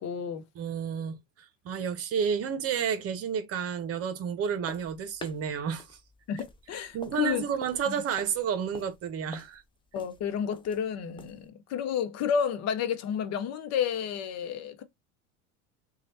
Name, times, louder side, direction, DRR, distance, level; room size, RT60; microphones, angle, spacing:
voice 1, 0.0-0.4 6.3-7.5 7.9-8.0 9.9-14.8, left 8 dB, 45° left, 0.8 m, -31 dB
voice 2, 0.6-6.0 6.9-9.6, right 7 dB, 40° right, 0.9 m, -31 dB
sound 1, 4.7-11.5, left 5 dB, 15° left, 0.4 m, -49 dB
3.1 x 2.4 x 2.7 m
hypercardioid pair, 90°, 36 cm